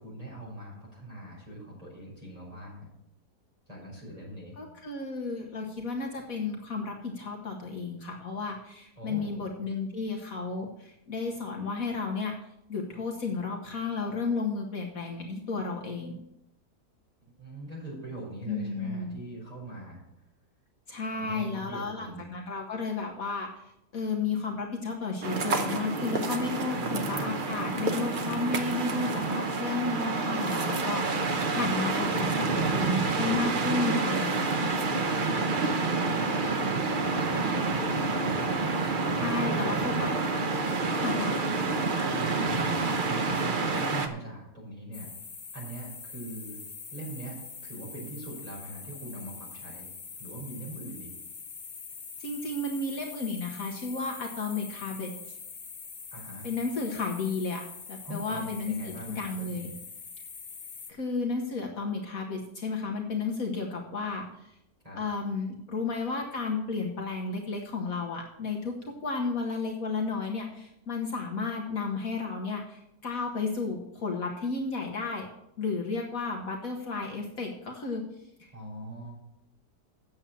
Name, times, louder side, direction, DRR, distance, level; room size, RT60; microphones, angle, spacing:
voice 1, 0.0-2.9 3.7-4.6 9.0-9.4 17.2-20.0 21.1-22.2 26.7-27.4 34.9-35.6 36.0-38.5 39.2-40.1 42.0-42.6 43.0-45.1 45.5-46.6 46.9-49.9 50.2-51.1 56.1-56.5 58.0-59.7 64.8-65.0 78.5-79.2, right 1 dB, 20° right, -4 dB, 5.1 m, -41 dB
voice 2, 4.6-12.3 12.7-16.2 18.5-19.1 20.9-34.8 39.1-40.2 40.9-41.3 52.2-55.4 56.4-59.7 60.9-64.5 65.0-75.3 75.6-78.0 78.4-78.5, left 4 dB, 60° left, 1 dB, 1.5 m, -33 dB
sound 1, 25.2-44.1, right 3 dB, 40° right, 0.8 m, -28 dB
sound 2, 44.9-60.9, left 5 dB, 40° left, 0.7 m, -44 dB
8.7 x 7.2 x 7.1 m, 0.84 s
omnidirectional pair, 1.8 m